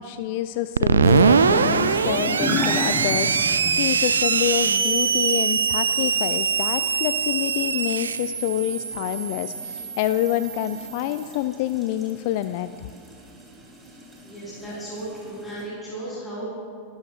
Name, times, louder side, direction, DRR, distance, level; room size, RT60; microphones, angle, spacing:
voice 1, 0.0-12.9, left 13 dB, 50° left, 12 dB, 0.3 m, -27 dB
Screech, 0.8-11.2, right 5 dB, 70° right, 0.5 m, -22 dB
sound 1, 1.0-15.7, equal, 15° right, 3.0 m, -36 dB
voice 2, 14.2-16.5, right 1 dB, 10° left, -8 dB, 4.1 m, -35 dB
23.5 x 12.5 x 2.4 m, 2.2 s
figure-of-eight pair, 90°, 0 cm